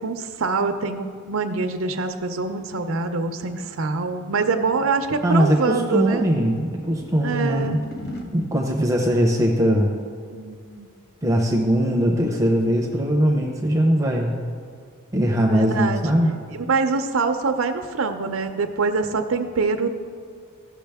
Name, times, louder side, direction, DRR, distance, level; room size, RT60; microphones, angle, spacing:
voice 1, 0.0-6.3 7.2-7.8 10.3-10.9 15.5-16.0 16.5-19.9, right 4 dB, 80° right, 7 dB, 0.6 m, -24 dB
sound 1, 2.4-8.3, left 1 dB, 50° left, 1.1 m, -41 dB
voice 2, 5.2-7.8 8.3-9.9 11.2-14.3 15.1-16.4, equal, 15° right, 1 dB, 0.7 m, -20 dB
15.0 x 6.1 x 3.5 m, 2.1 s
head